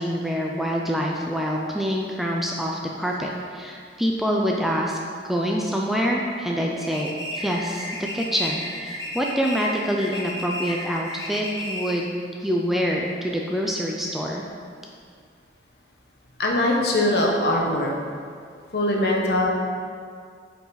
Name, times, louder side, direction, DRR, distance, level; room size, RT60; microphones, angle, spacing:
voice 1, 0.0-5.0 5.2-12.1 12.4-14.5, equal, ahead, -2 dB, 0.4 m, -26 dB
sound 1, 6.8-12.1, left 1 dB, 20° left, 0.8 m, -33 dB
voice 2, 16.4-17.9 18.7-19.5, left 1 dB, 60° left, -1 dB, 1.0 m, -21 dB
8.0 x 5.0 x 4.0 m, 2.1 s
head